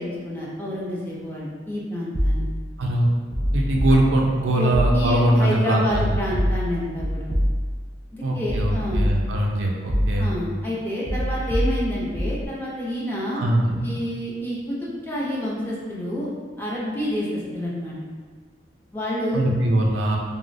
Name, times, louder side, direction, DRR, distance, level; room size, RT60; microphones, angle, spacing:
voice 1, 0.0-2.4 4.5-7.2 8.1-9.0 10.2-13.4 13.8-16.3 16.6-17.9 18.9-19.4, equal, 10° left, -6 dB, 0.5 m, -28 dB
sound 1, 2.1-2.8 3.3-4.4 4.7-5.3 5.9-7.9 8.5-9.5 9.9-10.5 11.0-12.5, equal, 80° left, 1.0 m, -25 dB
voice 2, 3.5-6.2 8.2-10.3 13.4-13.9 19.3-20.2, right 1 dB, 75° right, -1 dB, 0.4 m, -21 dB
3.7 x 2.0 x 2.6 m, 1.5 s
head